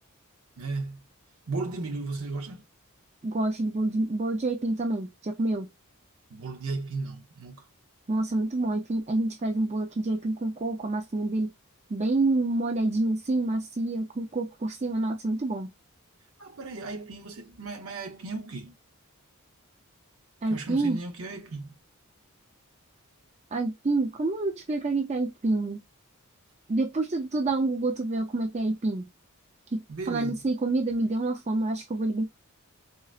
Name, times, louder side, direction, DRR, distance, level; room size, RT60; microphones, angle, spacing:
voice 1, 0.6-1.0 1.5-2.6 6.3-7.6 16.4-18.7 20.5-21.7 29.9-30.4, right 3 dB, 65° right, 0.7 m, -35 dB
voice 2, 3.2-5.7 8.1-11.5 11.9-15.7 20.4-21.0 23.5-25.8 26.7-29.1 29.7-32.3, right 2 dB, 30° right, 0.4 m, -27 dB
3.8 x 2.1 x 2.4 m
head